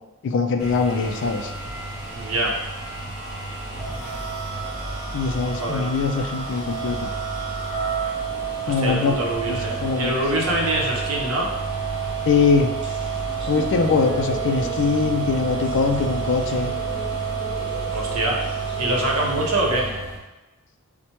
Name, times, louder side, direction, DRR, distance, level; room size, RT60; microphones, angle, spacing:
voice 1, 0.2-1.5 5.1-7.1 8.7-9.2 9.5-10.1 12.3-12.7 13.5-16.7, left 4 dB, 55° left, 5 dB, 0.3 m, -22 dB
sound 1, 0.6-20.2, right 6 dB, ahead, 1.1 m, -30 dB
sound 2, 0.9-19.5, equal, 20° right, 0.6 m, -38 dB
voice 2, 2.1-2.5 5.4-5.9 8.7-11.5 17.9-18.4 18.8-19.9, right 1 dB, 70° right, -1 dB, 0.7 m, -25 dB
4.4 x 2.1 x 2.9 m, 1.1 s
head